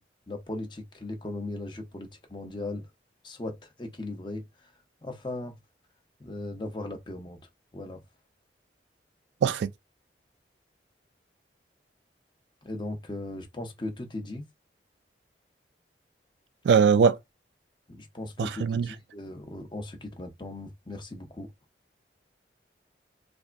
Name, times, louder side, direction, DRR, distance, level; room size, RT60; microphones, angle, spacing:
voice 1, 0.3-2.9 3.2-4.7 5.0-5.6 6.2-7.4 7.7-8.0 12.6-14.5 18.0-21.5, left 2 dB, 25° left, 0.7 m, -38 dB
voice 2, 16.6-17.2 18.4-18.9, right 6 dB, 80° right, 0.3 m, -21 dB
3.3 x 2.1 x 2.4 m
head